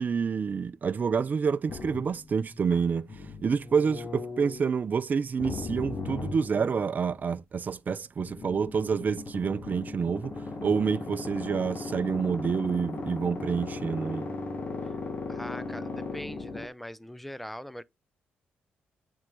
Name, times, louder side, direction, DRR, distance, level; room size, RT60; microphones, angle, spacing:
voice 1, 0.0-14.3, right 6 dB, 45° right, 0.6 m, -28 dB
sound 1, 1.7-4.7 5.4-7.2 8.2-16.7, left 3 dB, 40° left, 1.4 m, -37 dB
voice 2, 15.3-17.8, equal, 5° left, 0.6 m, -41 dB
7.4 x 4.7 x 3.8 m
supercardioid pair, 65°, 4 cm